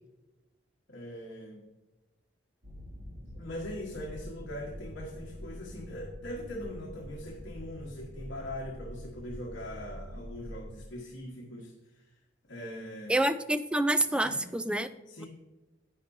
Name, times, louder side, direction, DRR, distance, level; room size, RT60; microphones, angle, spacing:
voice 1, 0.9-1.6 3.3-12.1 12.5-13.2 14.1-14.4 15.1-15.3, left 1 dB, 70° left, -2 dB, 1.4 m, -41 dB
sound 1, 2.6-10.6, equal, 70° right, 2.4 m, -45 dB
voice 2, 13.1-14.9, right 1 dB, 5° right, 11 dB, 0.4 m, -27 dB
10.5 x 9.0 x 2.7 m, 1.1 s
head